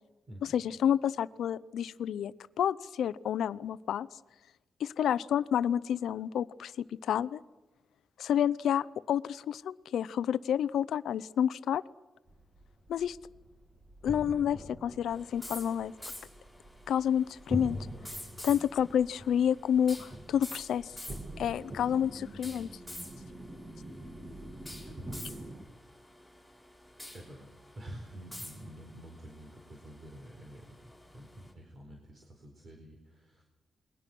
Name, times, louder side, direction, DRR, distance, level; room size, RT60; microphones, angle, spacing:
voice 1, 0.5-4.1 4.8-7.4 8.2-11.8 12.9-13.2 14.0-15.9 16.9-17.8 18.4-20.9 21.4-22.7, left 9 dB, 85° left, 16 dB, 0.7 m, -29 dB
sound 1, 12.3-25.7, right 1 dB, 20° right, 2.3 m, -44 dB
sound 2, 15.1-31.5, left 1 dB, ahead, 6.6 m, -49 dB
voice 2, 24.9-25.2 27.1-27.5 27.7-33.4, right 1 dB, 35° right, 2 dB, 4.2 m, -48 dB
29.0 x 21.5 x 6.1 m, 1.1 s
wide cardioid pair, 140°, 0 cm